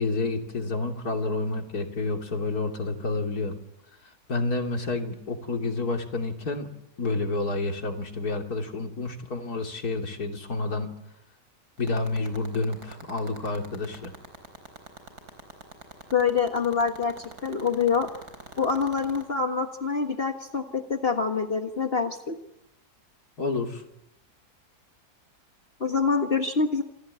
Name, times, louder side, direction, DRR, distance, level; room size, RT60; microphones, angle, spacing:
voice 1, 0.0-3.5 4.3-6.7 7.0-10.9 11.8-14.1 23.4-23.8, left 3 dB, 70° left, 3 dB, 3.4 m, -29 dB
sound 1, 11.8-19.2, right 3 dB, 75° right, 4.8 m, -42 dB
voice 2, 16.1-17.1 17.4-18.1 18.6-22.4 25.8-26.8, left 5 dB, 40° left, 5 dB, 1.7 m, -25 dB
28.5 x 17.5 x 9.8 m, 0.89 s
omnidirectional pair, 1.7 m